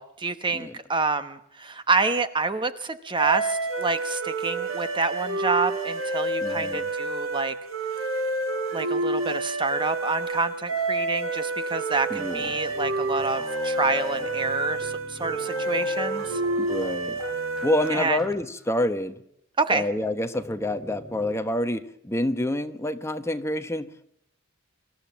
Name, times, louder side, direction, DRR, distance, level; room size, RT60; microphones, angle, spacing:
voice 1, 0.0-7.5 8.7-16.4 17.9-18.2 19.6-19.8, right 3 dB, 25° right, 11 dB, 1.0 m, -27 dB
sound 1, 3.2-18.2, right 2 dB, 85° right, 4.8 m, -29 dB
voice 2, 6.4-6.9 12.1-12.5 16.6-17.2 17.6-19.2 19.7-24.0, left 1 dB, 15° left, 9 dB, 1.2 m, -27 dB
sound 2, 12.3-18.3 18.6-18.7 20.3-21.3, equal, 5° right, 5.3 m, -45 dB
25.5 x 14.0 x 7.4 m, 0.72 s
head